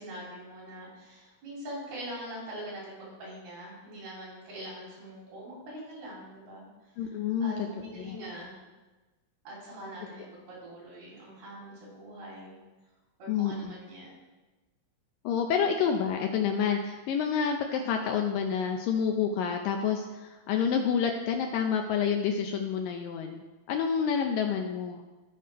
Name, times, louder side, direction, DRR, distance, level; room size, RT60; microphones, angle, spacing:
voice 1, 0.0-6.7 7.0-8.6 9.5-12.6 13.2-14.1, right 1 dB, 75° right, -6 dB, 5.3 m, -43 dB
voice 2, 7.0-7.5 8.0-8.2 13.3-13.8 15.2-25.0, left 7 dB, 80° left, 4 dB, 2.1 m, -28 dB
15.0 x 5.4 x 3.4 m, 1.2 s
omnidirectional pair, 4.4 m